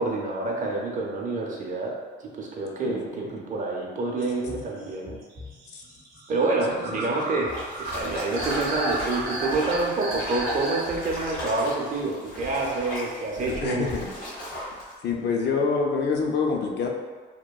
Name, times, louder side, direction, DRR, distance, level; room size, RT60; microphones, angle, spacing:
voice 1, 0.0-1.9 2.2-5.2 6.3-7.5 7.8-13.9, right 3 dB, 40° right, -2 dB, 0.5 m, -27 dB
sound 1, 4.2-11.9, right 1 dB, 80° right, 0.7 m, -34 dB
voice 2, 6.7-7.1 13.4-14.1 15.0-16.9, left 4 dB, 60° left, 1 dB, 0.4 m, -27 dB
sound 2, 7.5-14.9, equal, 75° left, 1.2 m, -37 dB
2.9 x 2.2 x 2.3 m, 1.4 s
cardioid pair, 90°, 20 cm